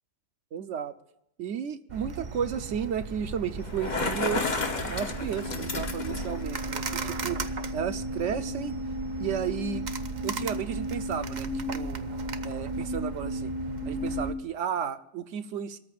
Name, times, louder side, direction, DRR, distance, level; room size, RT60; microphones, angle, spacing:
voice 1, 0.5-0.9 1.4-4.4 4.9-7.4 7.7-8.7 9.2-9.9 10.2-12.0 12.4-13.5 13.9-15.8, right 8 dB, 85° right, 10 dB, 1.1 m, -33 dB
sound 1, 1.9-14.3, right 4 dB, 45° right, 0.7 m, -37 dB
Bicycle, 3.6-6.4, left 3 dB, 40° left, 1.1 m, -31 dB
sound 2, 4.8-14.4, equal, 15° right, 1.2 m, -35 dB
27.5 x 13.5 x 2.4 m, 0.79 s
omnidirectional pair, 1.2 m